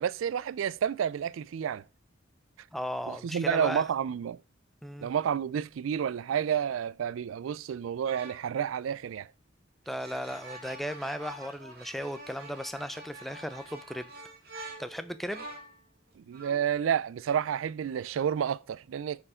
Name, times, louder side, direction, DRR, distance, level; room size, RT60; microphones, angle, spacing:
voice 1, 0.0-1.8 3.1-4.4 5.0-9.3 16.2-19.2, right 8 dB, 85° right, 0.3 m, -30 dB
voice 2, 2.7-3.8 4.8-5.1 9.9-14.1 14.8-15.5, equal, ahead, 0.4 m, -36 dB
sound 1, 8.1-8.4 9.8-15.8 16.3-16.7, right 2 dB, 50° right, 2.3 m, -46 dB
9.9 x 4.5 x 4.9 m
head